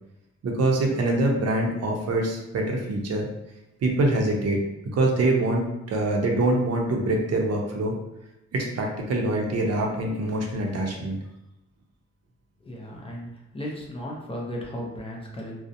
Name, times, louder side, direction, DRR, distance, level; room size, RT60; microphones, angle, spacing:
voice 1, 0.4-3.3 3.8-4.6 4.9-8.0 8.5-11.2, right 2 dB, 60° right, 0 dB, 0.6 m, -24 dB
voice 2, 12.6-13.3 13.5-15.6, equal, 20° left, -2 dB, 0.4 m, -35 dB
2.7 x 2.0 x 2.5 m, 0.89 s
wide cardioid pair, 160°, 29 cm